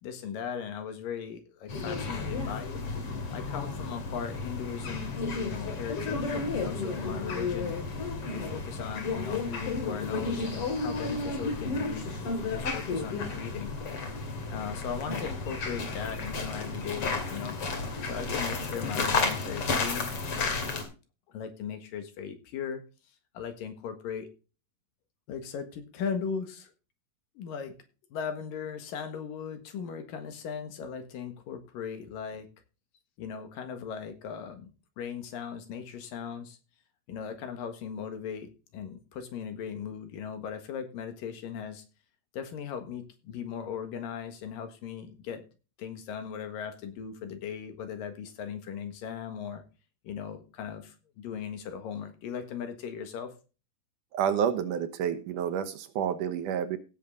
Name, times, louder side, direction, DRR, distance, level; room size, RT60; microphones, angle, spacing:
voice 1, 0.0-2.8 3.3-7.8 8.3-13.7 14.5-17.6 18.0-20.1 21.3-22.8 23.3-24.3 25.3-26.7 27.4-27.8 28.1-32.5 33.2-36.6 37.1-41.8 42.3-45.5 45.8-49.6 50.0-53.3, left 7 dB, 75° left, 7 dB, 3.2 m, -38 dB
sound 1, 1.7-20.8, left 4 dB, 45° left, 3.0 m, -32 dB
voice 2, 54.1-56.8, right 8 dB, 70° right, 10 dB, 2.4 m, -29 dB
16.5 x 7.3 x 3.8 m, 0.32 s
omnidirectional pair, 4.0 m